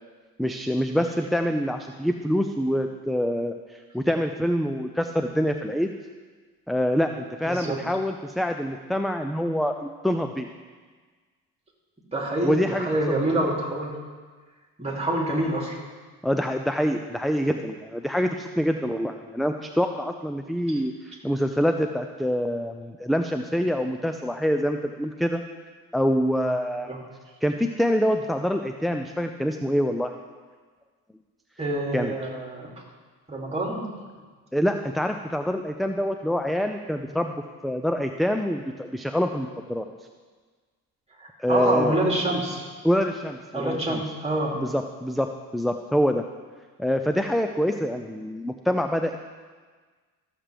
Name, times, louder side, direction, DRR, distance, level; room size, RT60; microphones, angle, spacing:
voice 1, 0.4-5.9 6.7-10.5 12.4-12.9 16.2-25.4 25.9-27.0 27.4-30.1 31.9-32.1 34.5-37.3 37.6-39.9 41.4-42.0 42.8-44.0 44.5-46.2 46.8-49.2, equal, ahead, 6 dB, 0.3 m, -25 dB
voice 2, 7.4-7.8 12.1-13.9 14.8-15.8 20.7-20.8 26.9-27.0 31.6-32.7 33.3-33.8 41.2-42.7 43.5-44.5, right 1 dB, 15° right, -1 dB, 2.6 m, -26 dB
14.0 x 7.5 x 3.4 m, 1.5 s
supercardioid pair, 85°, 37 cm